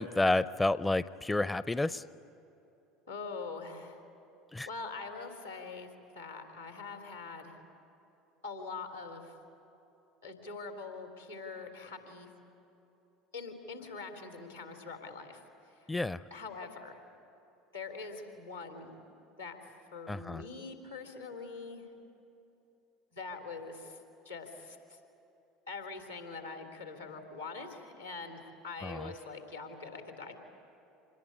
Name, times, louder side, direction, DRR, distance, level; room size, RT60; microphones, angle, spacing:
voice 1, 0.0-2.0 4.5-4.7 15.9-16.2 20.1-20.4 28.8-29.1, left 2 dB, 10° left, 17 dB, 0.5 m, -30 dB
voice 2, 3.1-4.0 4.6-5.9 6.1-7.6 8.4-9.3 10.2-12.3 13.3-15.4 16.3-17.0 17.7-18.9 19.4-19.6 19.9-21.8 23.1-24.0 24.2-24.8 25.7-30.3, left 4 dB, 90° left, 3 dB, 3.4 m, -43 dB
26.0 x 20.5 x 9.7 m, 3.0 s
figure-of-eight pair, 65°, 0 cm